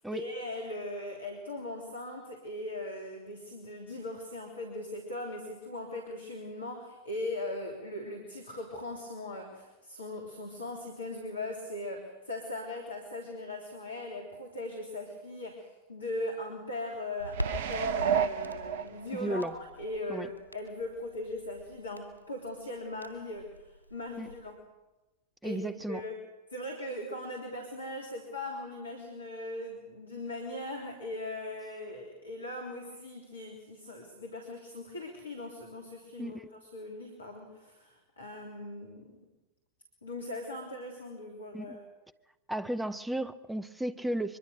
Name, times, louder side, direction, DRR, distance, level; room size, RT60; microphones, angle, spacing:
voice 1, 0.1-24.6 25.4-25.6 25.9-26.2 26.5-39.1 40.0-41.8, left 1 dB, 75° left, 1 dB, 3.3 m, -39 dB
Crackle, 17.2-24.5, equal, 85° right, 2.8 m, -44 dB
sound 1, 17.3-19.4 19.9-20.0, right 7 dB, 55° right, 0.9 m, -31 dB
voice 2, 19.1-19.5 20.1-20.3 24.2-24.3 25.4-26.0 36.2-36.5 41.5-41.8 42.5-44.4, right 1 dB, 5° right, 15 dB, 0.9 m, -34 dB
24.0 x 22.5 x 6.4 m, 1.1 s
figure-of-eight pair, 90°, 0 cm